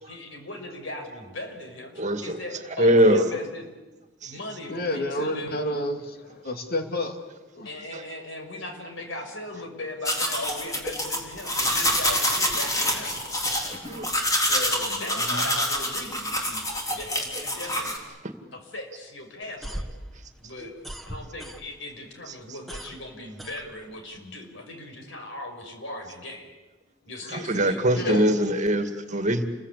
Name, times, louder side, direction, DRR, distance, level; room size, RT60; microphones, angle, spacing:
voice 1, 0.1-1.9 2.2-3.7 4.2-5.6 7.6-13.2 14.5-18.0 18.5-19.9 20.4-20.7 21.0-26.5 27.0-28.3, left 1 dB, 75° left, 4 dB, 5.7 m, -38 dB
voice 2, 2.0-2.4 2.8-3.3 4.2-4.3 7.9-8.0 13.8-14.1 20.6-20.7 27.3-29.4, right 1 dB, 40° right, 7 dB, 2.2 m, -22 dB
voice 3, 4.7-7.3 7.5-7.7 14.9-15.5 28.0-28.4, left 1 dB, 50° left, 5 dB, 2.8 m, -30 dB
sound 1, 10.1-18.0, left 1 dB, 20° left, 3.7 m, -26 dB
sound 2, 19.4-22.0 22.3-24.2, right 1 dB, ahead, 1.7 m, -39 dB
29.5 x 22.0 x 8.5 m, 1.1 s
head